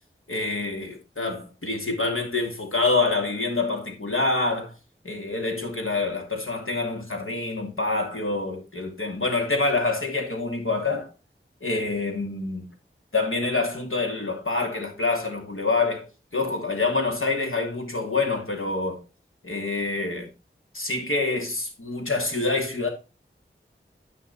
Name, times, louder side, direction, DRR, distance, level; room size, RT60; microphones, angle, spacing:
voice 1, 0.3-4.7 5.0-11.1 11.6-12.6 13.1-16.0 16.3-19.0 19.4-20.3 20.7-22.9, left 3 dB, 75° left, 2.7 m, -26 dB
10.5 x 5.5 x 4.2 m
wide cardioid pair, 45°, 21 cm